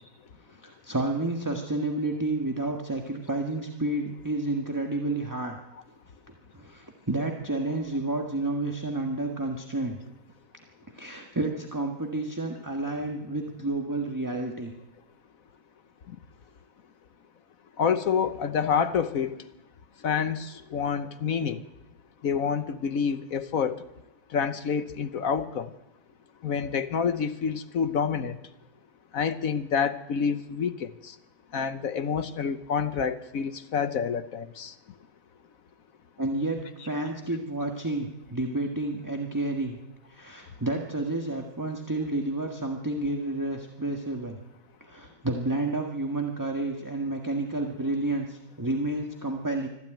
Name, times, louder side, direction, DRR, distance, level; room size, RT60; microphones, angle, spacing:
voice 1, 0.5-5.6 6.3-10.0 10.9-14.7 36.2-39.8 40.1-44.4 44.8-49.7, right 2 dB, 10° right, 2 dB, 1.2 m, -30 dB
voice 2, 17.8-19.4 20.0-21.6 22.2-23.8 24.3-25.7 26.4-28.4 29.1-31.1 31.5-34.7, left 6 dB, 55° left, 11 dB, 1.0 m, -28 dB
25.0 x 14.0 x 9.1 m, 0.97 s
omnidirectional pair, 2.2 m